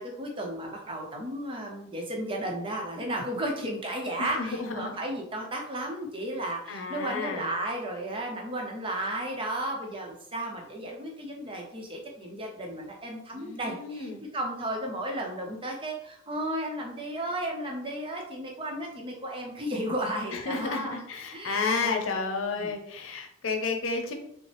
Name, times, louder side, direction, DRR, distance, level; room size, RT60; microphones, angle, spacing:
voice 1, 0.0-20.9 21.3-22.7, right 1 dB, 25° right, 1 dB, 0.7 m, -34 dB
voice 2, 4.2-4.9 6.7-7.5 13.3-14.2 20.3-24.1, left 4 dB, 90° left, 4 dB, 0.7 m, -31 dB
5.1 x 2.1 x 3.3 m, 0.72 s
head